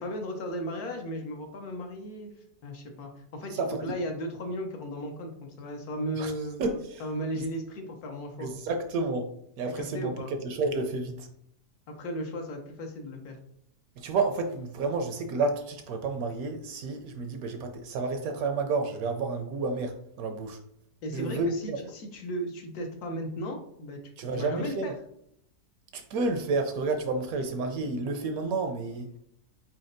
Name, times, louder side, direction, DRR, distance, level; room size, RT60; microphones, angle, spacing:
voice 1, 0.0-2.3 2.6-6.6 7.0-8.5 9.8-10.3 11.9-13.4 21.0-24.0 24.4-24.9, equal, 70° left, 3 dB, 1.3 m, -35 dB
voice 2, 3.5-3.9 6.2-6.3 6.6-7.0 7.3-7.4 8.4-11.3 14.0-20.6 21.1-21.8 24.2-24.9 25.9-29.2, right 3 dB, 70° right, 6 dB, 1.0 m, -30 dB
4.4 x 4.3 x 2.6 m, 0.71 s
omnidirectional pair, 1.7 m